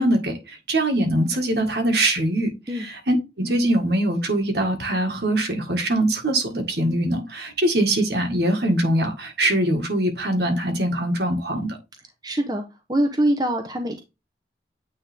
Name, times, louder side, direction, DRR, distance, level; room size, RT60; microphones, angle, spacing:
voice 1, 0.0-2.5 2.8-11.8, right 1 dB, 65° right, 1.7 m, -22 dB
voice 2, 12.2-12.6 12.9-14.0, right 1 dB, 20° right, 0.9 m, -23 dB
8.9 x 3.6 x 3.5 m
head